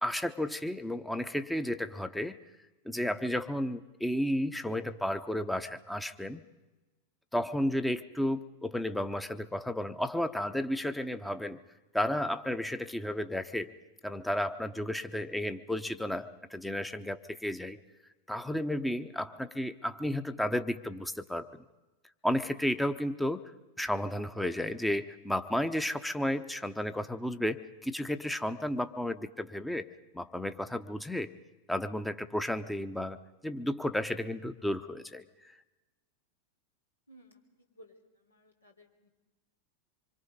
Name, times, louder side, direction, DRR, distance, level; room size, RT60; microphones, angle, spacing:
voice 1, 0.0-2.4 2.8-6.4 7.3-11.6 11.9-13.7 14.0-17.8 18.3-21.6 22.2-23.4 23.8-29.9 30.1-31.3 31.7-33.2 33.4-35.6, left 1 dB, 5° left, 10 dB, 0.9 m, -33 dB
voice 2, 37.1-39.1, equal, 80° left, 2 dB, 3.3 m, -58 dB
25.5 x 24.0 x 5.3 m, 1.1 s
figure-of-eight pair, 90°, 0 cm